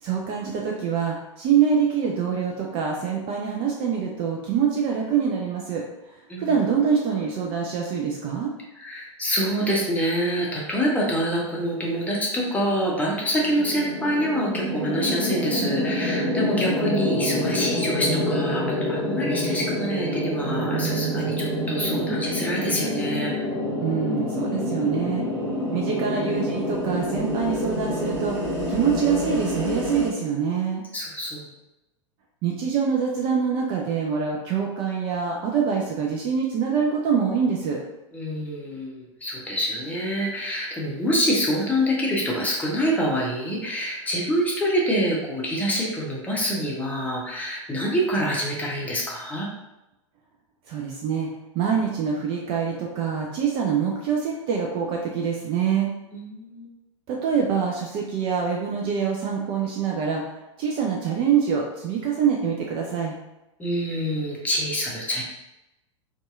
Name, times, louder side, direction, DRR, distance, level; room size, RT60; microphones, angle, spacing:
voice 1, 0.0-5.8 6.4-8.5 23.8-25.3 25.7-30.8 32.4-37.8 50.7-55.9 57.1-63.1, right 7 dB, 30° right, -1 dB, 0.3 m, -25 dB
voice 2, 8.7-23.3 30.5-30.6 30.9-31.5 38.1-49.5 56.1-56.7 63.6-65.2, equal, 10° left, -4 dB, 0.6 m, -26 dB
sound 1, 12.3-30.1, left 1 dB, 50° right, 1.0 m, -27 dB
2.6 x 2.3 x 2.4 m, 0.94 s
figure-of-eight pair, 95°, 16 cm